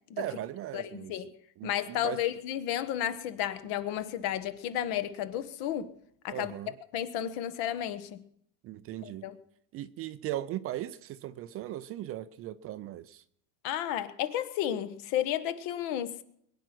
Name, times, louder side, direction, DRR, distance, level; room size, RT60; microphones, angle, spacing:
voice 1, 0.2-1.1 1.6-2.2 6.3-6.7 8.6-9.3 9.7-13.2, right 13 dB, 30° right, 0.5 m, -38 dB
voice 2, 0.7-1.3 1.6-5.9 6.2-6.5 6.9-8.2 9.0-9.4 13.6-16.2, left 11 dB, 55° left, 1.4 m, -32 dB
22.0 x 9.2 x 6.0 m
supercardioid pair, 135°, 44 cm